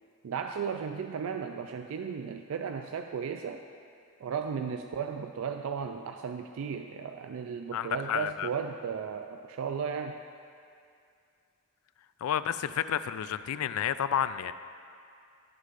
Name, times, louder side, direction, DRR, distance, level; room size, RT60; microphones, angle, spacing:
voice 1, 0.2-3.6 4.2-10.2, right 6 dB, 70° right, 5 dB, 0.3 m, -35 dB
voice 2, 7.7-8.5 12.2-14.5, left 9 dB, 85° left, 13 dB, 0.3 m, -30 dB
16.5 x 6.4 x 2.5 m, 2.4 s
head